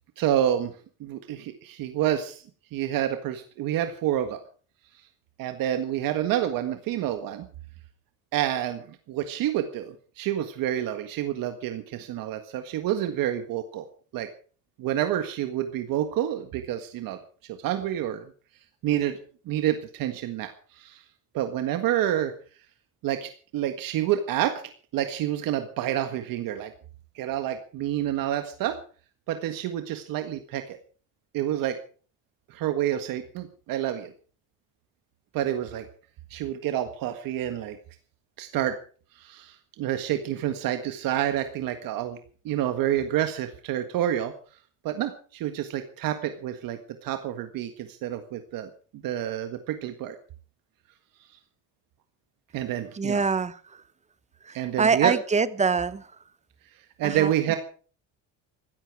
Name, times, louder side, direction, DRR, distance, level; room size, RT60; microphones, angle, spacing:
voice 1, 0.2-0.7 1.0-2.4 2.7-4.4 5.4-7.4 8.3-13.9 14.1-14.3 14.8-17.2 17.6-18.2 18.8-19.2 19.4-21.0 21.3-22.3 23.0-24.5 24.9-26.7 27.1-28.8 29.3-30.8 31.3-31.8 32.5-34.1 35.3-35.8 36.3-37.8 38.4-38.7 39.1-42.2 42.4-44.3 44.8-48.7 49.0-50.1 52.5-53.2 54.5-55.2 57.0-57.6, right 11 dB, 75° right, 1.7 m, -28 dB
voice 2, 52.9-53.6 54.5-56.0 57.0-57.5, right 5 dB, 20° right, 1.0 m, -25 dB
16.0 x 14.5 x 4.8 m
cardioid pair, 135°, 34 cm